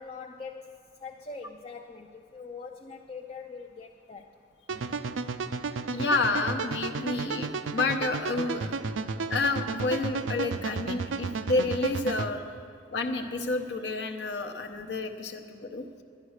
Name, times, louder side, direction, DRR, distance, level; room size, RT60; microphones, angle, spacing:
voice 1, 0.0-4.3, left 4 dB, 30° left, 4 dB, 0.4 m, -43 dB
sound 1, 4.7-12.3, right 4 dB, 90° right, 0.5 m, -33 dB
voice 2, 5.9-8.9 9.3-12.4 12.9-15.8, left 3 dB, 65° left, 4 dB, 0.8 m, -29 dB
11.5 x 10.5 x 6.5 m, 2.3 s
head